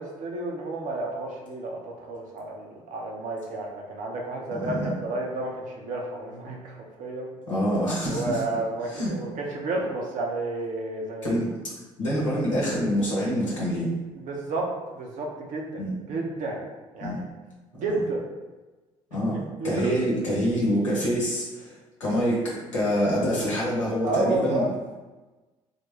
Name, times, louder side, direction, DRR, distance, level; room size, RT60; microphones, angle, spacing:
voice 1, 0.0-7.3 8.1-11.3 14.2-15.8 16.1-16.6 16.9-17.2 17.7-18.2 19.1-19.9 24.0-24.7, right 2 dB, 55° right, -1 dB, 0.9 m, -31 dB
voice 2, 4.6-4.9 7.5-8.4 8.9-9.1 11.2-11.5 12.0-13.9 15.8-16.0 17.0-17.2 17.9-18.0 19.1-19.4 19.6-21.7 22.0-24.6, equal, 90° left, -6 dB, 1.0 m, -26 dB
4.1 x 2.2 x 3.1 m, 1.2 s
hypercardioid pair, 55°, 16 cm